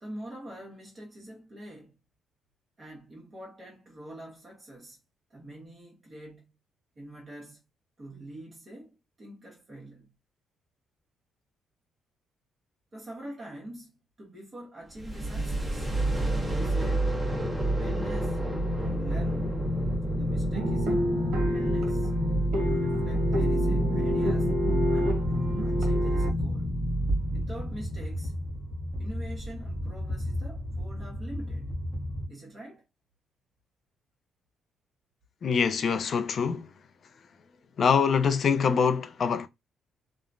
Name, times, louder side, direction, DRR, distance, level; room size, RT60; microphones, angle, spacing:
voice 1, 0.0-2.0 2.8-5.0 5.3-6.5 7.0-7.6 8.0-10.1 12.9-16.0 16.5-17.1 17.7-18.4 18.8-19.6 20.1-21.1 21.5-22.1 22.6-24.6 24.9-25.2 25.6-26.9 27.3-28.3 29.0-31.7 32.3-32.8, right 1 dB, 35° right, 1.2 m, -45 dB
sound 1, 15.0-32.3, equal, 15° right, 1.0 m, -29 dB
sound 2, 20.5-26.3, equal, 85° right, 0.8 m, -30 dB
voice 2, 35.4-36.7 37.8-39.5, left 6 dB, 55° left, 0.5 m, -24 dB
3.0 x 2.1 x 2.5 m
cardioid pair, 90°, 0 cm